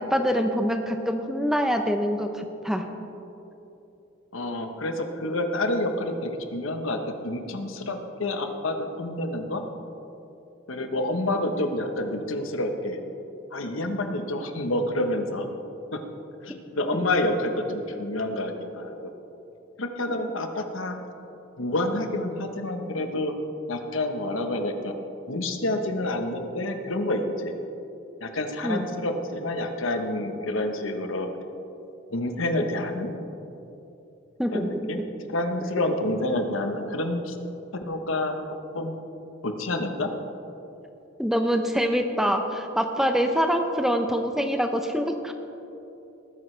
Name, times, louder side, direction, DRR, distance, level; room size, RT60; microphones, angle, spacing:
voice 1, 0.0-2.9 28.6-28.8 34.4-34.7 41.2-45.3, equal, ahead, 5 dB, 0.6 m, -25 dB
voice 2, 4.3-7.0 7.2-9.6 10.7-13.0 13.5-15.5 15.9-16.0 16.4-19.1 19.8-20.9 21.6-23.3 23.7-24.9 25.3-27.5 28.2-31.3 32.1-33.2 34.5-35.0 35.3-37.4 37.9-38.4 38.7-39.0 39.4-40.1, left 1 dB, 75° left, 6 dB, 1.0 m, -28 dB
19.5 x 9.4 x 3.3 m, 2.9 s
head